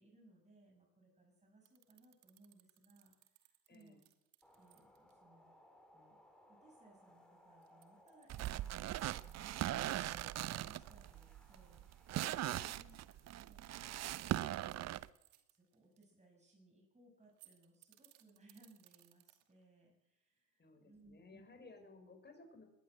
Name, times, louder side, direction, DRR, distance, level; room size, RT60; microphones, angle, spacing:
voice 1, 0.0-3.1 3.4-4.0 4.6-5.5 5.9-6.2 6.5-13.0 15.5-21.4, right 2 dB, 15° right, 0 dB, 6.5 m, -66 dB
sound 1, 1.7-5.1 7.6-10.7 11.0-11.1 12.2-16.0 17.2-19.6, right 18 dB, 55° right, 2.5 m, -67 dB
voice 2, 3.7-4.0 12.4-14.0 20.6-22.7, left 3 dB, 20° left, 5 dB, 6.3 m, -60 dB
sound 2, 4.4-13.1, left 1 dB, ahead, 4.9 m, -66 dB
sound 3, 8.3-15.1, right 13 dB, 35° right, 0.8 m, -40 dB
21.0 x 19.5 x 7.7 m, 0.92 s
hypercardioid pair, 75°, 49 cm